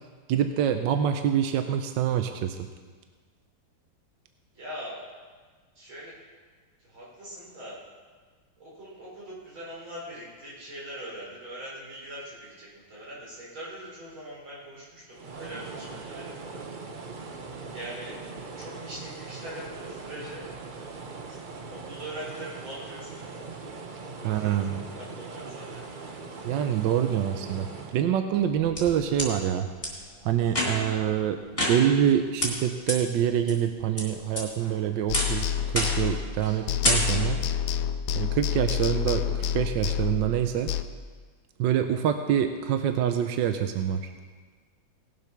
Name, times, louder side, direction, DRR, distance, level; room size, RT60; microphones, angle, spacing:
voice 1, 0.3-2.6 24.2-24.8 26.4-27.7 27.9-29.7 30.2-37.4 38.1-40.7 41.6-44.1, right 9 dB, 70° right, 7 dB, 1.3 m, -26 dB
voice 2, 4.5-5.0 5.8-6.2 6.8-7.8 8.6-16.6 17.7-18.1 18.6-20.4 21.3-21.4 21.7-23.5 24.2-26.1, right 1 dB, 90° right, -6 dB, 5.2 m, -42 dB
sound 1, 15.1-28.1, right 4 dB, 55° right, 0.5 m, -41 dB
sound 2, 28.3-29.3 29.8-29.9 30.5-31.0 31.6-32.1 32.4-32.5 32.9-33.0 33.5-34.0 34.4-34.7 35.1-35.4 35.8-36.1 36.4-36.6 36.8-37.4, left 1 dB, 15° left, 3.0 m, -28 dB
sound 3, 35.1-36.4 36.7-40.8, left 9 dB, 85° left, 1.4 m, -28 dB
18.0 x 7.5 x 5.9 m, 1.5 s
omnidirectional pair, 2.1 m